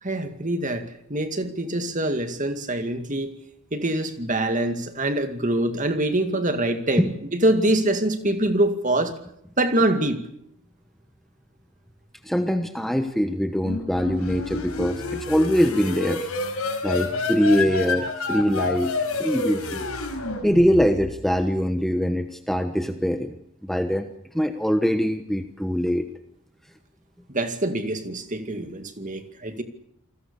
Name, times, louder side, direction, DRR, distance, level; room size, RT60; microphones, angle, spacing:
voice 1, 0.0-3.3 3.7-7.1 7.3-9.1 9.6-10.2 27.3-29.6, right 1 dB, 35° right, 7 dB, 2.2 m, -24 dB
voice 2, 12.2-16.3 16.8-18.9 19.2-19.9 20.4-23.3 23.6-24.1 24.3-26.1, equal, ahead, 7 dB, 1.1 m, -23 dB
sound 1, 13.6-21.3, left 3 dB, 70° left, 4.8 m, -29 dB
28.5 x 20.5 x 7.0 m, 0.74 s
head